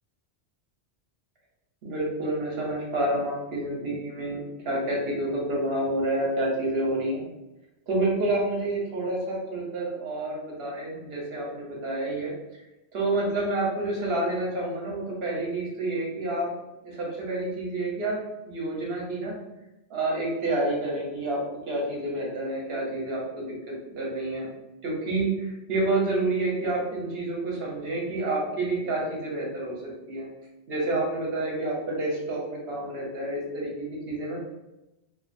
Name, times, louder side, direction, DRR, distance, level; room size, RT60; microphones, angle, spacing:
voice 1, 1.8-7.2 7.9-12.3 12.9-16.5 16.8-18.2 18.5-19.4 19.9-21.4 21.7-24.5 24.8-30.3 30.7-32.4 32.7-34.4, right 2 dB, 70° right, -3 dB, 1.0 m, -29 dB
2.5 x 2.3 x 2.5 m, 0.97 s
omnidirectional pair, 1.1 m